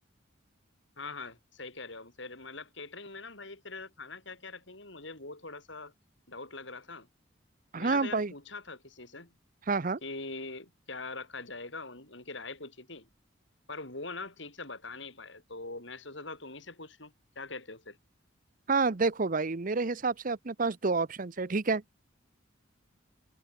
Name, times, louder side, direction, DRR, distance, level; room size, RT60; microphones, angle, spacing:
voice 1, 1.0-5.9 6.3-7.1 7.7-9.3 10.0-13.1 13.7-18.0, left 3 dB, 60° left, 7.0 m, -43 dB
voice 2, 7.7-8.3 9.7-10.0 18.7-21.8, right 4 dB, 40° right, 0.7 m, -29 dB
head